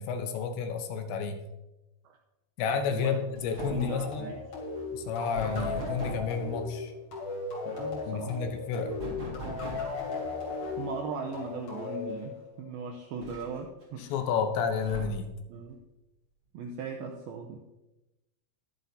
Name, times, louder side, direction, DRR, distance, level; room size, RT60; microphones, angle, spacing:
voice 1, 0.0-1.4 2.6-4.3 4.9-6.9 8.0-9.0 14.0-15.3, left 6 dB, 75° left, 6 dB, 3.0 m, -31 dB
sound 1, 2.9-3.1 3.4-4.0 5.3-6.4 9.0-10.0 11.6-11.7 12.1-12.2 13.2-13.8 14.8-15.4, right 1 dB, 25° right, 3.1 m, -40 dB
voice 2, 2.9-3.4 3.7-4.4 7.7-8.4 10.8-14.1 15.5-15.8 16.5-17.7, right 4 dB, 90° right, 2 dB, 2.1 m, -38 dB
sound 2, 3.6-12.8, left 4 dB, 40° left, 3.5 m, -37 dB
22.0 x 7.5 x 2.8 m, 0.99 s
omnidirectional pair, 5.4 m